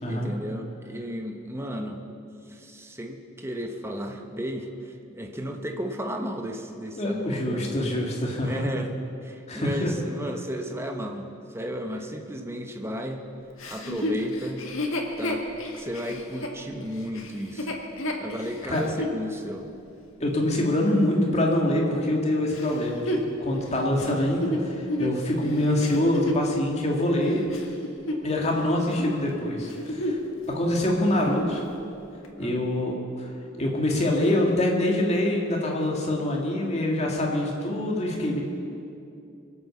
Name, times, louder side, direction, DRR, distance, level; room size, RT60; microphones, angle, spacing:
voice 1, 0.1-2.0 2.5-7.8 8.4-8.9 9.2-13.3 13.7-14.7 15.2-15.4 15.7-17.8 18.2-19.7 25.1-25.2 32.4-32.7, equal, 15° right, 3 dB, 1.1 m, -34 dB
voice 2, 7.0-8.7 9.5-9.9 18.7-18.8 20.2-27.4 28.2-30.2 30.5-31.6 32.4-33.3 33.6-38.4, left 1 dB, 35° left, -1 dB, 2.4 m, -25 dB
Chuckle chortle, 13.6-19.2 19.8-19.9 22.5-26.5 27.1-28.6 28.9-29.2 29.6-30.3 30.6-30.7 31.1-31.6 32.2-32.3, left 1 dB, 80° left, 1.7 m, -31 dB
23.5 x 8.7 x 7.0 m, 2.7 s
head